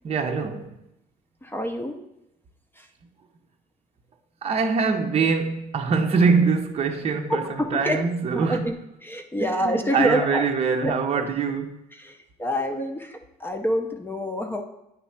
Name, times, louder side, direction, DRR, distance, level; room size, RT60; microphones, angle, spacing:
voice 1, 0.0-0.8 4.4-7.4 7.7-8.6 9.4-11.8 12.8-12.9, right 5 dB, 35° right, 0.7 m, -23 dB
voice 2, 1.4-2.0 2.8-2.9 7.3-8.0 8.3-10.5 10.8-11.3 11.9-14.6, equal, 10° left, 0.7 m, -27 dB
9.3 x 3.2 x 5.7 m
cardioid pair, 110°, 17 cm